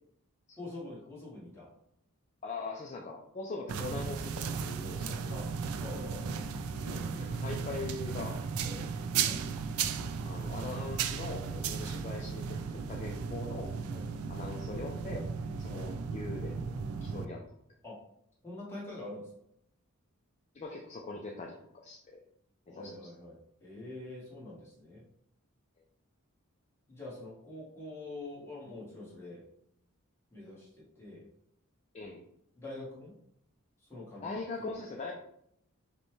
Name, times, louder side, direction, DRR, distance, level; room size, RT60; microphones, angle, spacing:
voice 1, 0.6-1.7 5.3-5.5 5.8-6.5 6.8-7.2 9.2-9.4 13.9-14.1 15.7-15.8 17.8-18.0 18.4-19.3 22.7-23.4 23.6-25.0 26.9-29.4 30.3-31.3 32.6-33.1 33.9-34.3 34.6-34.7, left 2 dB, 10° left, -6 dB, 1.3 m, -45 dB
voice 2, 2.4-5.5 7.2-8.4 8.6-8.9 10.3-13.7 14.3-15.3 15.6-17.4 20.5-22.2 22.7-22.9 31.9-32.2 34.2-35.1, left 3 dB, 30° left, 0 dB, 0.4 m, -41 dB
sound 1, 3.7-17.3, right 6 dB, 80° right, 0.4 m, -35 dB
5.1 x 2.2 x 3.1 m, 0.73 s
head